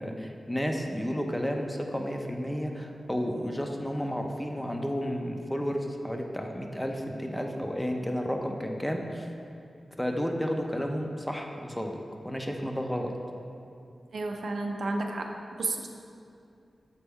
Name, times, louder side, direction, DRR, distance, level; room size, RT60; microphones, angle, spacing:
voice 1, 0.0-9.3 10.0-12.0 12.2-13.1, equal, 5° left, 2 dB, 0.4 m, -32 dB
voice 2, 14.1-15.9, right 2 dB, 75° right, 2 dB, 0.5 m, -32 dB
6.9 x 4.2 x 3.5 m, 2.6 s
wide cardioid pair, 135°, 0 cm